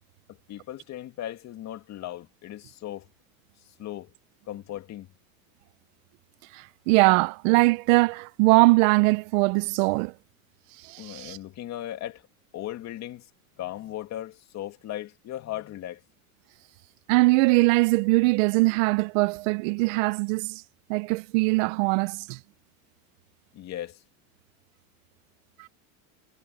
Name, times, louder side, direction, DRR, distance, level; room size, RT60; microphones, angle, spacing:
voice 1, 0.3-3.1 3.8-4.1 4.5-5.1 11.0-12.2 12.5-13.3 13.6-16.0 23.5-24.0, left 13 dB, 40° left, 2.4 m, -37 dB
voice 2, 6.5-10.1 10.8-11.4 17.1-20.6 20.9-22.4 25.6-25.7, right 24 dB, 60° right, 0.8 m, -22 dB
supercardioid pair, 135°, 43 cm